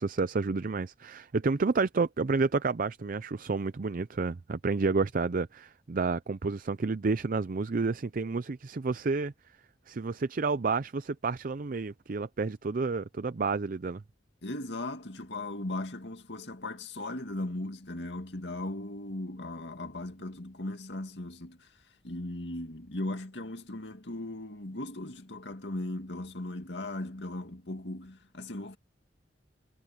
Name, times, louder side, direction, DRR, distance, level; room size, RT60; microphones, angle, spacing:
voice 1, 0.0-9.3 9.9-14.0, right 4 dB, 50° right, 0.5 m, -30 dB
voice 2, 14.4-21.7 22.0-28.8, left 1 dB, 70° left, 2.4 m, -38 dB
head